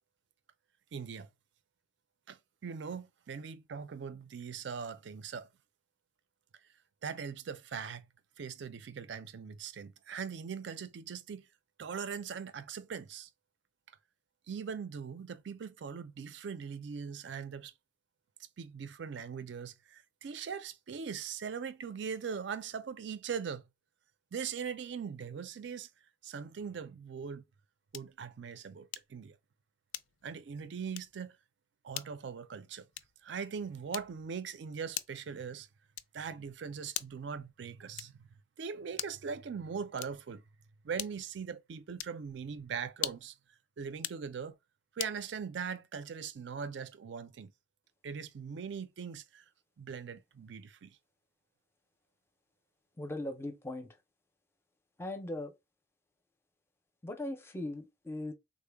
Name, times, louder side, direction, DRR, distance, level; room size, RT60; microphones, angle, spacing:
voice 1, 0.9-1.3 2.3-5.5 7.0-8.1 8.4-11.5 11.8-13.3 14.5-17.7 18.6-23.6 24.3-25.9 26.2-27.4 27.9-29.4 30.2-31.4 31.8-32.9 33.2-35.7 36.1-40.4 40.8-43.4 43.8-44.6 45.0-47.5 48.0-49.4 49.8-51.0, right 6 dB, 70° right, 0.4 m, -41 dB
sound 1, 27.9-28.2 28.9-29.2 29.9-30.4 30.9-31.2 31.9-32.2 32.9-33.3 33.9-34.3 34.9-35.3 35.9-36.3 36.9-37.3 37.9-38.3 38.9-39.3 39.9-40.3 41.0-41.4 41.9-42.2 42.9-43.4 43.9-44.3 45.0-45.2, left 14 dB, 85° left, 0.3 m, -41 dB
voice 2, 53.0-54.0 55.0-55.5 57.0-58.3, left 1 dB, 15° left, 0.4 m, -39 dB
3.7 x 2.0 x 3.3 m
head